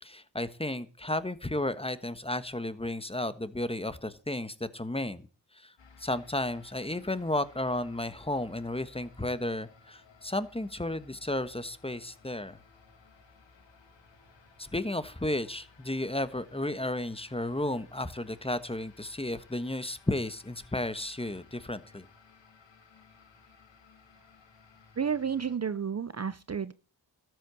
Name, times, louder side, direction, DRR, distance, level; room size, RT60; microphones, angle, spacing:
voice 1, 0.0-5.2 5.6-5.7 6.0-12.6 14.6-22.0, left 1 dB, 15° left, 13 dB, 1.3 m, -33 dB
sound 1, 5.8-25.6, left 4 dB, 85° left, 2.4 m, -58 dB
voice 2, 25.0-26.7, right 7 dB, 35° right, 16 dB, 0.7 m, -31 dB
13.0 x 8.0 x 7.0 m, 0.36 s
cardioid pair, 50°, 43 cm